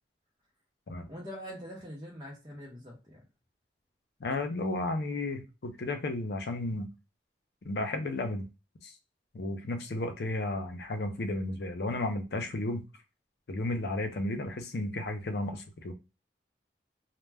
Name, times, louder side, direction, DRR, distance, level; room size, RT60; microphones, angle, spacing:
voice 1, 1.1-3.2, equal, 25° right, 0.7 m, -43 dB
voice 2, 4.2-6.9 7.6-8.5 8.8-8.9 9.3-12.8 13.5-15.9, left 2 dB, 70° left, 0.5 m, -33 dB
2.2 x 2.1 x 3.3 m
head